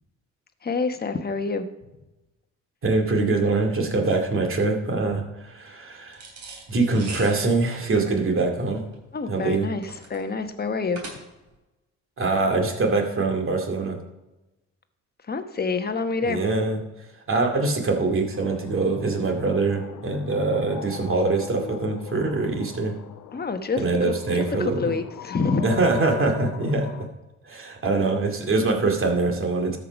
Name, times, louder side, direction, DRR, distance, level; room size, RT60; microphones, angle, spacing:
voice 1, 0.6-1.7 9.1-11.0 15.3-16.4 23.3-25.8, left 4 dB, 30° left, 8 dB, 1.1 m, -27 dB
voice 2, 2.8-6.2 6.7-8.9 9.3-9.7 12.2-14.0 16.2-16.8 17.3-23.0 23.8-24.9 25.6-27.1 27.4-29.8, right 3 dB, 45° right, 3 dB, 2.4 m, -24 dB
sound 1, 6.1-11.6, right 3 dB, 65° right, 3.2 m, -41 dB
sound 2, 18.3-27.1, left 8 dB, 85° left, 0.9 m, -40 dB
13.0 x 5.7 x 5.3 m, 1.0 s
cardioid pair, 90°, 30 cm